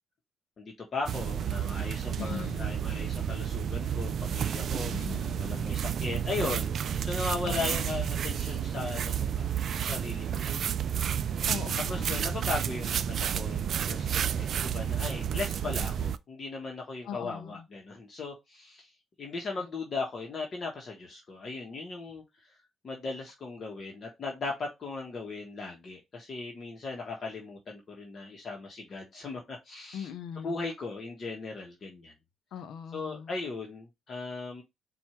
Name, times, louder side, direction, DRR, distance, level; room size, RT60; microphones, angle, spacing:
voice 1, 0.6-5.0 5.4-10.6 10.9-11.2 11.9-22.5 22.8-30.1 30.4-32.1 32.9-34.6, left 3 dB, 45° left, 1.1 m, -38 dB
sound 1, 1.1-16.2, right 8 dB, 60° right, 0.3 m, -31 dB
voice 2, 2.2-2.8 4.9-5.6 7.4-8.2 11.5-12.4 17.0-17.6 29.9-30.6 32.5-33.4, left 8 dB, 80° left, 0.5 m, -41 dB
4.4 x 2.4 x 4.3 m
cardioid pair, 90°, 0 cm